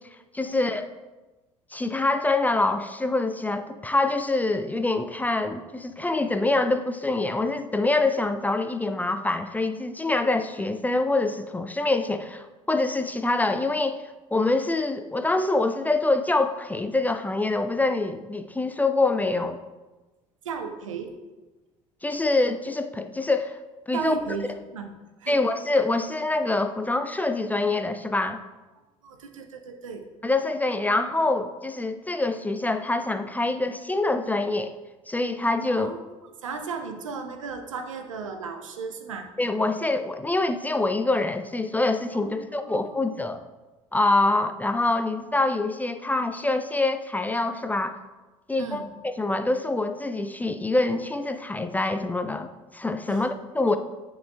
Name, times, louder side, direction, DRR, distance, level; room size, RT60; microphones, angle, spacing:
voice 1, 0.3-0.9 1.7-14.0 14.3-19.6 22.0-23.6 23.9-24.1 25.3-28.4 30.2-34.7 35.1-35.9 39.4-43.4 43.9-48.0 48.5-53.8, left 2 dB, 10° left, 8 dB, 0.3 m, -25 dB
voice 2, 20.4-21.1 23.9-24.5 24.7-24.9 25.2-25.4 29.0-30.0 35.7-36.0 36.4-39.3 42.1-43.0 48.6-48.9 53.1-53.3, right 5 dB, 75° right, 6 dB, 0.6 m, -35 dB
8.7 x 5.4 x 2.2 m, 1.2 s
figure-of-eight pair, 55°, 17 cm